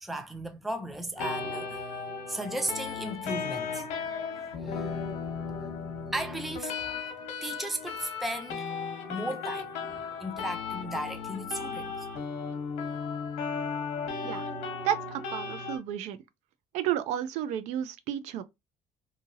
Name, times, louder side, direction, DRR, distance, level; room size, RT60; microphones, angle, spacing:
voice 1, 0.0-1.8 2.3-3.9 4.3-4.9 5.5-5.7 6.1-6.7 7.4-8.7 9.1-12.1, right 1 dB, ahead, 0.4 m, -36 dB
sound 1, 1.2-15.8, left 5 dB, 75° left, 0.9 m, -35 dB
voice 2, 14.8-16.2 16.7-18.4, right 10 dB, 80° right, 0.5 m, -32 dB
2.8 x 2.7 x 2.5 m
cardioid pair, 145°, 12 cm